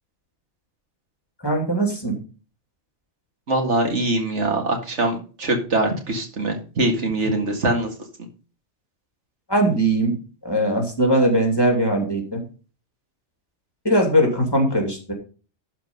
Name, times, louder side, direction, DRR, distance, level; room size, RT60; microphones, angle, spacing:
voice 1, 1.4-2.2 9.5-10.1 10.4-12.4 13.8-15.1, right 1 dB, 20° left, 1 dB, 2.9 m, -20 dB
voice 2, 3.5-7.9, right 2 dB, 85° right, 3 dB, 2.4 m, -23 dB
12.0 x 4.5 x 5.4 m, 0.36 s
omnidirectional pair, 1.2 m